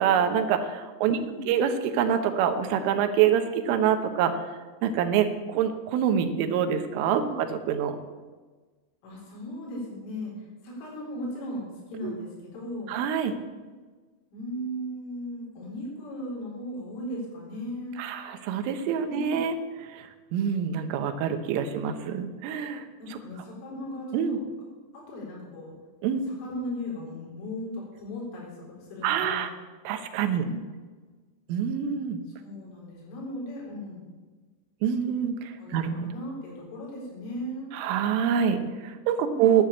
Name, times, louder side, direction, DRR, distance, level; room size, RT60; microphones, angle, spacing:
voice 1, 0.0-1.2 1.5-4.4 4.8-8.0 12.0-12.1 12.9-13.3 18.0-19.6 19.9-22.9 23.1-23.2 24.1-24.4 26.0-26.3 29.0-29.5 29.9-30.4 31.5-32.2 34.8-36.1 37.7-39.7, right 8 dB, 80° right, 7 dB, 3.6 m, -26 dB
voice 2, 1.1-1.5 7.2-7.4 9.0-12.9 14.3-18.0 19.1-19.4 23.0-24.4 24.9-25.7 26.2-29.6 30.4-30.6 32.3-34.0 35.6-37.7 39.2-39.5, equal, 75° left, -3 dB, 6.8 m, -37 dB
10.5 x 9.8 x 8.5 m, 1.4 s
omnidirectional pair, 5.8 m